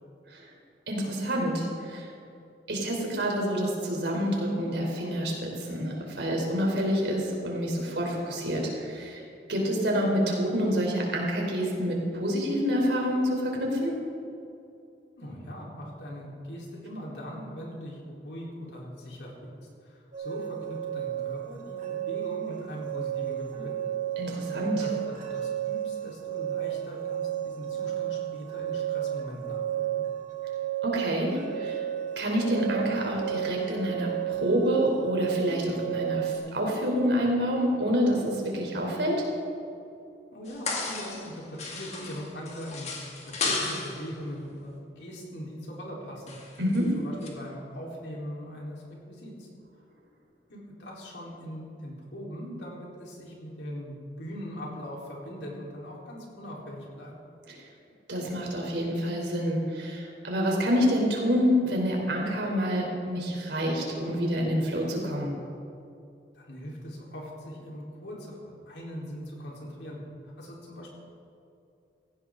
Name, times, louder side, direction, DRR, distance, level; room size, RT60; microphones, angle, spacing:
voice 1, 0.9-2.1 2.7-9.2 9.5-14.0 24.2-24.8 30.8-31.8 32.2-39.3 46.6-46.9 57.5-57.6 58.1-65.3, equal, 75° right, -1 dB, 3.5 m, -27 dB
voice 2, 15.2-19.5 19.8-23.7 24.4-30.0 40.3-42.9 43.2-46.3 46.9-49.5 50.5-57.1 66.3-70.0 70.2-71.0, equal, 85° left, -3 dB, 3.8 m, -40 dB
sound 1, 20.1-36.4, right 11 dB, 45° right, 2.4 m, -33 dB
sound 2, 40.5-41.3 41.6-44.1 46.3-46.8 47.2-47.3, left 3 dB, 40° left, 2.2 m, -33 dB
17.0 x 15.5 x 3.8 m, 2.7 s
head